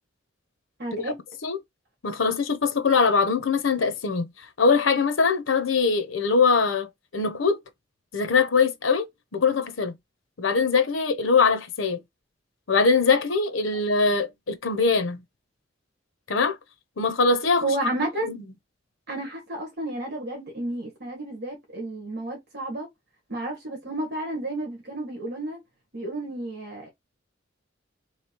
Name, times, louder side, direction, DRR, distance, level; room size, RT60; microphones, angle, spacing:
voice 1, 0.8-1.2 17.6-18.3 19.1-22.9 23.3-25.6 25.9-26.9, right 2 dB, 55° right, 1.5 m, -31 dB
voice 2, 2.0-7.6 8.1-9.1 9.3-9.9 10.4-12.0 12.7-15.2 16.3-16.6 17.0-17.6 18.2-18.4, left 4 dB, 90° left, 0.8 m, -22 dB
3.2 x 3.1 x 4.4 m
head